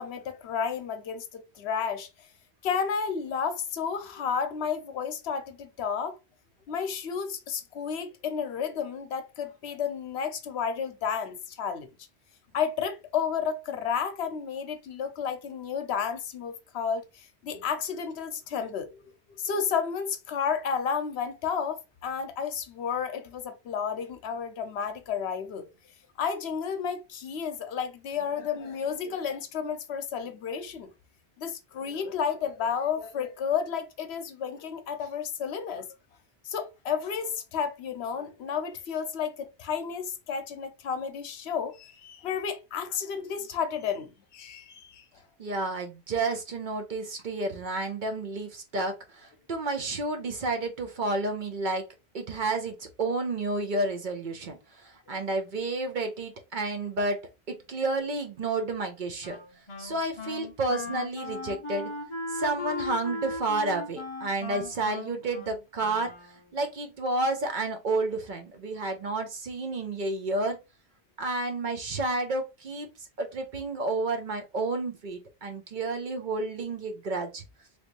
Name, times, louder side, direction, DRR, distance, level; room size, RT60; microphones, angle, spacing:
voice 1, 0.0-2.1 2.6-6.2 6.7-11.9 12.5-19.0 19.4-25.7 26.2-30.9 31.4-35.9 36.4-45.0 55.1-55.3 60.0-60.1, left 7 dB, 75° left, 0.9 m, -32 dB
voice 2, 45.4-49.0 49.5-51.9 52.1-54.6 55.1-57.2 57.5-59.4 59.8-61.9 62.3-66.1 66.5-70.6 71.2-72.9 73.2-77.4, right 2 dB, 55° right, 0.7 m, -30 dB
Wind instrument woodwind instrument, 59.2-66.6, left 3 dB, 30° left, 0.6 m, -38 dB
3.4 x 2.6 x 2.9 m
omnidirectional pair, 1.1 m